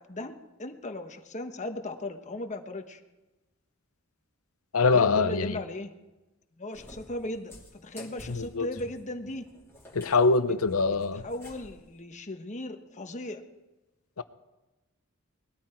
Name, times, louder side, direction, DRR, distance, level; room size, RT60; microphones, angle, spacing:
voice 1, 0.0-3.0 4.8-5.9 6.6-7.5 7.8-9.4 10.9-13.4, left 2 dB, 35° left, 1.2 m, -37 dB
voice 2, 4.7-5.6 8.3-8.7 9.9-11.2 14.2-14.3, left 4 dB, 90° left, 0.8 m, -24 dB
Cat, 6.7-11.8, left 1 dB, 10° left, 2.8 m, -50 dB
20.0 x 13.5 x 4.5 m
head